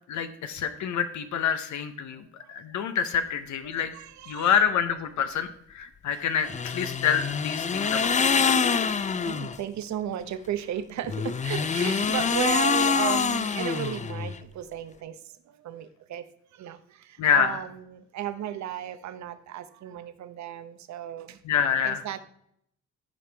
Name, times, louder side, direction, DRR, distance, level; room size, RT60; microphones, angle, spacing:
voice 1, 0.1-2.2 2.5-3.9 4.3-8.4 17.2-17.6 21.4-22.0, left 8 dB, 70° left, 9 dB, 0.8 m, -27 dB
voice 2, 3.6-4.6 9.2-16.3 16.5-21.4 21.8-22.2, right 10 dB, 65° right, 11 dB, 0.8 m, -35 dB
sound 1, 6.4-9.6 11.0-14.4, left 5 dB, 25° left, 0.4 m, -25 dB
14.0 x 5.1 x 3.3 m, 0.71 s
cardioid pair, 90°, 30 cm